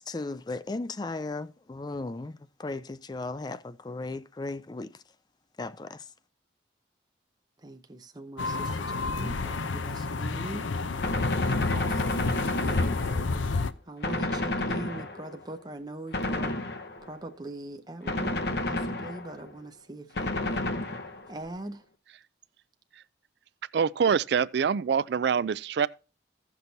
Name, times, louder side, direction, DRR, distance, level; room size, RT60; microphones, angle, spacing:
voice 1, 0.0-5.0 5.6-6.0, left 3 dB, 20° left, 0.4 m, -36 dB
voice 2, 7.6-11.2 11.5-16.6 17.0-20.6 21.3-21.8, right 1 dB, 20° right, 0.6 m, -42 dB
sound 1, 8.4-13.7, left 3 dB, 90° left, 0.6 m, -30 dB
Gunshot gunfire, 11.0-13.5 14.0-15.4 16.1-17.2 18.1-19.4 20.2-21.4, left 2 dB, 60° left, 0.9 m, -31 dB
voice 3, 23.7-25.9, right 6 dB, 65° right, 0.3 m, -25 dB
16.0 x 6.1 x 2.7 m
head